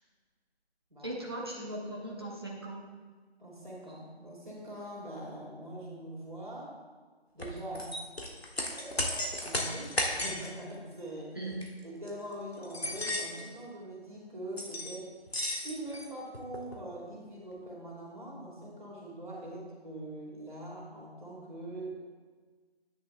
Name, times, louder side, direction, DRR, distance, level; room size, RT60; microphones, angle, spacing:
voice 1, 1.0-2.8 11.3-11.6, right 1 dB, 25° right, -4 dB, 1.0 m, -39 dB
voice 2, 3.4-6.8 7.3-7.9 8.7-11.4 11.8-15.1 15.5-21.9, right 1 dB, 50° right, -4 dB, 2.5 m, -43 dB
sound 1, 7.4-10.5 11.5-11.7 12.1-12.2 12.6-13.5 14.6-15.0 15.3-16.8, left 1 dB, 70° left, 1.6 m, -34 dB
11.5 x 9.7 x 2.2 m, 1.4 s
figure-of-eight pair, 165°, 32 cm